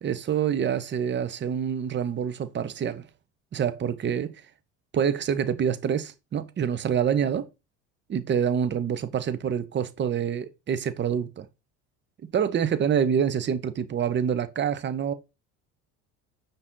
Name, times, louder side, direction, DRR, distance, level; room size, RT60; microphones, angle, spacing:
voice 1, 0.0-3.1 3.5-4.4 4.9-7.5 8.1-11.5 12.3-15.1, right 8 dB, 30° right, 0.6 m, -26 dB
5.5 x 2.6 x 3.6 m
supercardioid pair, 75°, 36 cm